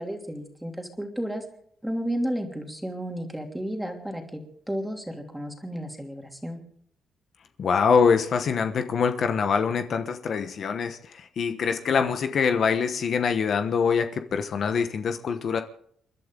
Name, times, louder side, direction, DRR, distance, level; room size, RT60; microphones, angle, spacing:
voice 1, 0.0-1.4 1.8-4.4 4.7-6.6, equal, 5° right, 2 dB, 3.0 m, -32 dB
voice 2, 7.6-15.6, left 6 dB, 55° left, 7 dB, 1.1 m, -24 dB
29.5 x 12.0 x 3.9 m, 0.64 s
cardioid pair, 125°, 0 cm